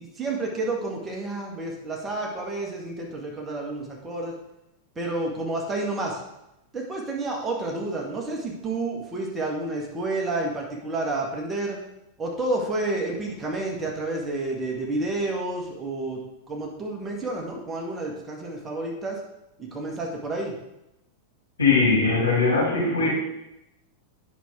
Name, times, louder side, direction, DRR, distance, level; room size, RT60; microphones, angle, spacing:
voice 1, 0.0-4.3 5.0-6.2 6.7-11.8 12.2-16.2 16.5-19.2 19.6-20.5, right 2 dB, 20° right, -1 dB, 1.8 m, -30 dB
voice 2, 21.6-23.1, left 4 dB, 75° left, -5 dB, 3.4 m, -20 dB
9.2 x 6.2 x 3.7 m, 0.88 s
figure-of-eight pair, 90°, 0 cm